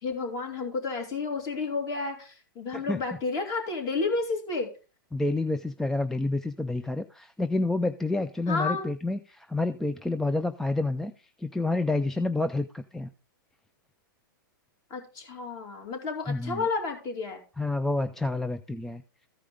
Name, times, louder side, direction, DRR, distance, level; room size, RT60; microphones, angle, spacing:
voice 1, 0.0-4.7 8.5-8.9 14.9-17.4, left 4 dB, 35° left, 3 dB, 3.1 m, -31 dB
voice 2, 5.1-11.1 11.4-13.1 16.3-16.7 17.6-19.0, left 2 dB, 5° left, 10 dB, 0.3 m, -29 dB
14.5 x 4.9 x 3.7 m, 0.34 s
hypercardioid pair, 130°, 12 cm